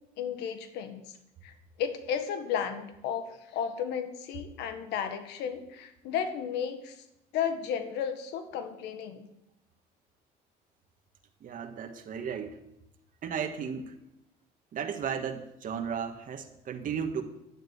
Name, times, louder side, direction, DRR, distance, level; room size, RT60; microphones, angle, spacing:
voice 1, 0.2-1.1 1.4-7.0 7.3-9.3, left 8 dB, 90° left, 8 dB, 1.6 m, -33 dB
voice 2, 11.4-12.6 13.2-14.0 14.7-17.2, right 7 dB, 55° right, 5 dB, 1.6 m, -35 dB
11.5 x 7.6 x 9.6 m, 0.84 s
cardioid pair, 110°, 17 cm